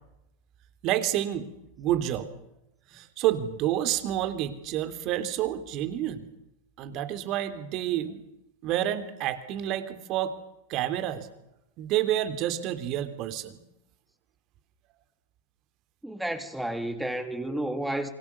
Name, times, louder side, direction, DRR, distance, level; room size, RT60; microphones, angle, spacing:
voice 1, 0.8-1.5 1.8-2.3 2.9-6.3 6.8-8.2 8.6-10.3 10.7-11.3 11.8-13.6, right 12 dB, 45° right, 3.4 m, -29 dB
voice 2, 16.0-18.1, right 1 dB, 5° right, 3.4 m, -31 dB
28.0 x 24.5 x 7.1 m
hypercardioid pair, 95°, 0 cm